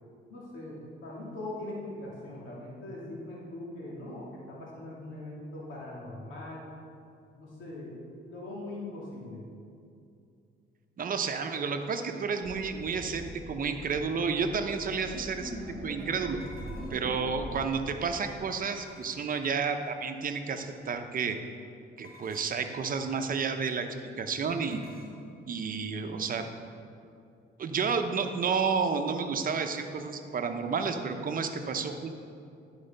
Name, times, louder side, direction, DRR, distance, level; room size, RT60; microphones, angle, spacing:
voice 1, 0.3-6.7 7.4-9.4, left 1 dB, 75° left, -5 dB, 2.3 m, -41 dB
voice 2, 11.0-15.6 15.8-16.4 16.9-21.4 22.0-23.9 24.2-24.8 25.4-26.4 27.6-32.1, right 5 dB, 45° right, 6 dB, 0.8 m, -31 dB
sound 1, 12.4-18.5, equal, 10° right, 1.4 m, -42 dB
sound 2, 16.4-17.2 18.6-19.5 22.0-22.7 24.6-25.2, equal, 50° left, 1.4 m, -53 dB
11.0 x 4.9 x 5.3 m, 2.5 s
cardioid pair, 90°, 20 cm